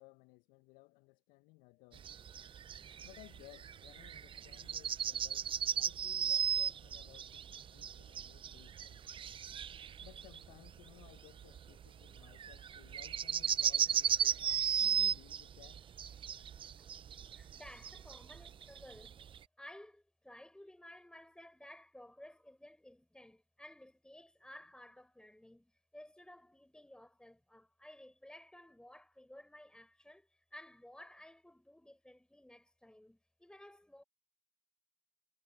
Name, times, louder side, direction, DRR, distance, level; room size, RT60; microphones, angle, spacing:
voice 1, 0.0-2.1 3.0-5.5 5.7-9.0 10.0-15.8, left 23 dB, 70° left, 1.4 m, -60 dB
sound 1, 1.9-19.4, right 8 dB, 40° right, 0.6 m, -36 dB
voice 2, 17.3-19.3 19.6-34.0, left 1 dB, 5° left, 6.9 m, -56 dB
hypercardioid pair, 60°, 14 cm